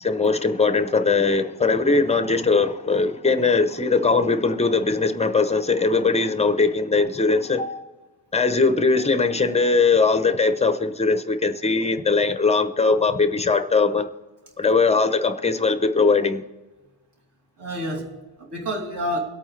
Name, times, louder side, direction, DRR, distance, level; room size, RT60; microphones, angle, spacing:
voice 1, 0.0-7.6 8.3-14.1 14.6-16.4, left 4 dB, 15° left, 0.5 m, -20 dB
voice 2, 17.6-19.2, equal, 55° right, 3.1 m, -29 dB
23.5 x 8.7 x 3.2 m
wide cardioid pair, 175°, 48 cm